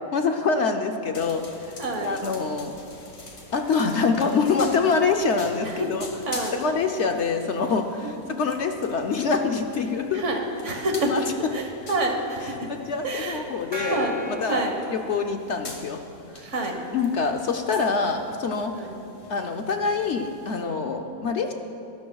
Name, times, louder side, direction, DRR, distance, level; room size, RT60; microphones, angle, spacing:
voice 1, 0.1-1.7 2.0-2.7 3.5-6.1 6.5-10.2 10.8-11.2 12.7-14.0 14.4-16.0 16.9-18.7 19.3-21.5, left 4 dB, 60° left, 4 dB, 0.8 m, -25 dB
sound 1, 1.1-20.6, left 2 dB, 45° left, 1.7 m, -45 dB
voice 2, 1.8-2.1 5.6-5.9 6.3-6.5 8.0-8.4 10.1-11.1 11.5-12.7 13.0-13.4 13.8-14.2 14.4-14.7 16.4-16.8 18.7-18.9 20.8-21.0, right 2 dB, 50° right, 2 dB, 1.7 m, -28 dB
Gong, 13.7-15.7, left 1 dB, 15° left, 1.5 m, -37 dB
23.5 x 12.5 x 2.3 m, 2.8 s
omnidirectional pair, 1.6 m